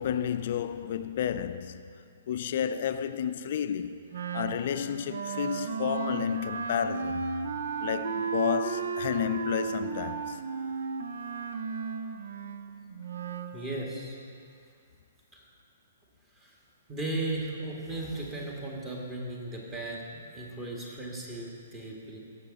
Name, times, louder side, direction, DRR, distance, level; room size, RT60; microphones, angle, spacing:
voice 1, 0.0-1.9 2.3-4.0 4.3-7.3 7.8-10.4, left 9 dB, 50° left, 0.5 m, -31 dB
Wind instrument woodwind instrument, 4.1-13.6, right 5 dB, 60° right, 0.7 m, -34 dB
voice 2, 7.4-7.9 13.5-14.1 15.3-15.4 16.4-16.5 16.9-22.2, right 2 dB, 20° right, 2.1 m, -36 dB
16.0 x 6.8 x 4.2 m
figure-of-eight pair, 120°, 0 cm